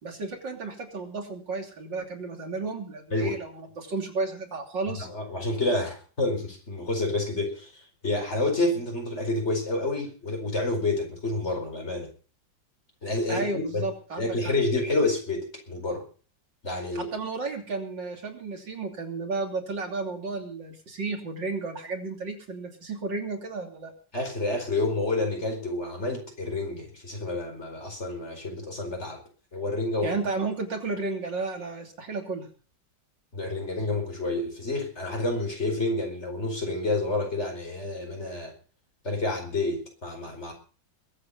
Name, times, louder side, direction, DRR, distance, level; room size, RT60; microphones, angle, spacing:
voice 1, 0.0-5.1 13.3-14.5 16.9-23.9 30.0-32.5, right 3 dB, 75° right, 2 dB, 3.7 m, -33 dB
voice 2, 5.0-12.1 13.0-13.8 14.2-16.1 16.6-17.1 24.1-29.2 29.5-30.1 33.3-38.5 39.0-40.5, left 2 dB, 35° left, 2 dB, 4.9 m, -29 dB
22.0 x 8.7 x 5.6 m, 0.40 s
omnidirectional pair, 2.0 m